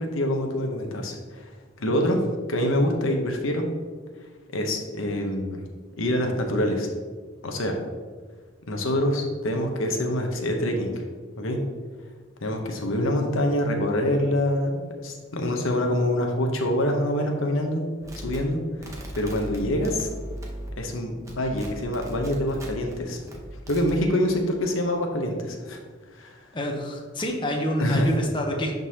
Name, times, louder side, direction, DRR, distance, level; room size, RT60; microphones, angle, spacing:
voice 1, 0.0-1.5 1.8-3.7 4.5-5.6 6.0-6.9 7.4-7.8 8.7-11.0 11.4-11.6 12.4-17.8 18.2-18.6 19.1-20.1 20.8-23.2 23.7-25.8 26.1-26.4 27.8-28.1, left 1 dB, 85° left, 3 dB, 0.9 m, -25 dB
sound 1, 18.0-20.9 21.2-22.9 23.3-24.0, right 1 dB, 15° right, 1.0 m, -37 dB
voice 2, 26.5-28.7, equal, 25° left, 1 dB, 0.8 m, -28 dB
11.0 x 3.9 x 2.8 m, 1.5 s
head